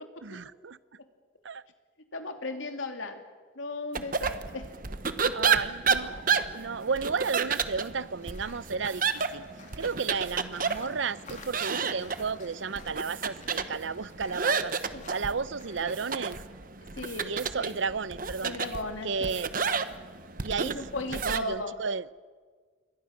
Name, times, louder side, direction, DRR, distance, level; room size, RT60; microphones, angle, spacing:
voice 1, 0.2-0.8 1.4-1.6 5.3-6.3 6.5-9.0 9.3-9.4 9.8-16.4 17.2-18.5 19.0-19.5 20.4-20.8 21.3-22.0, right 5 dB, 70° right, 0.7 m, -33 dB
voice 2, 2.1-3.2 3.5-4.7 5.0-5.3 14.9-15.1 16.9-17.3 17.6-17.7 18.4-19.4 20.6-21.8, left 2 dB, 85° left, 2.8 m, -36 dB
sound 1, 3.9-21.4, right 5 dB, 45° right, 1.0 m, -31 dB
sound 2, 6.3-16.4, left 4 dB, 40° left, 2.9 m, -53 dB
28.0 x 22.5 x 6.6 m
head